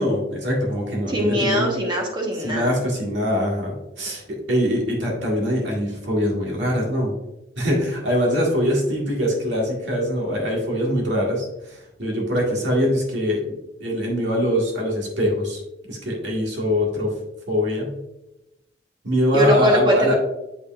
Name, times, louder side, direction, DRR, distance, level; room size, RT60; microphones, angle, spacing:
voice 1, 0.0-1.7 2.4-7.1 7.6-15.6 15.9-17.1 17.5-17.9 19.0-20.1, equal, 80° right, -2 dB, 1.8 m, -23 dB
voice 2, 1.1-2.7 19.3-20.1, equal, 25° right, 0 dB, 1.2 m, -21 dB
8.1 x 5.4 x 2.5 m, 0.93 s
head